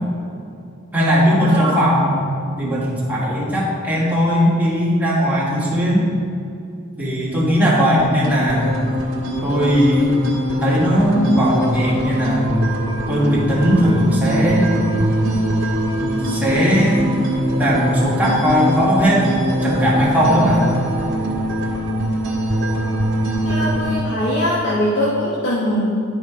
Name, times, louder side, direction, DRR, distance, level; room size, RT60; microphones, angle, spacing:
voice 1, 0.9-2.1 2.6-6.1 7.0-8.9 9.4-10.2 10.6-12.6 13.1-14.7 16.2-17.1 17.6-19.3 19.6-20.7, equal, 10° right, -7 dB, 1.8 m, -18 dB
voice 2, 1.5-1.8 23.4-25.9, equal, 60° left, -7 dB, 1.3 m, -21 dB
sound 1, 8.0-24.0, equal, 65° right, 1.6 m, -22 dB
10.5 x 5.1 x 3.7 m, 2.5 s
head